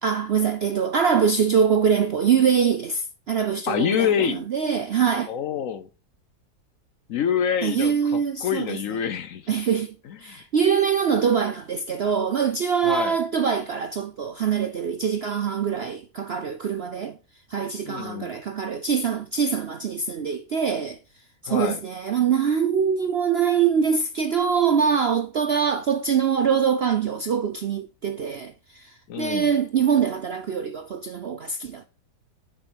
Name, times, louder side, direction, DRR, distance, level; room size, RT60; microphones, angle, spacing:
voice 1, 0.0-5.3 7.6-8.8 9.5-9.9 10.2-17.2 17.5-21.0 21.4-31.9, right 7 dB, 60° right, 0.6 m, -23 dB
voice 2, 3.7-4.5 5.3-5.9 7.1-9.5 10.0-10.4 12.8-13.2 17.9-18.3 21.5-21.8 29.1-29.5, left 9 dB, 65° left, 0.9 m, -26 dB
6.9 x 6.6 x 7.9 m
omnidirectional pair, 1.8 m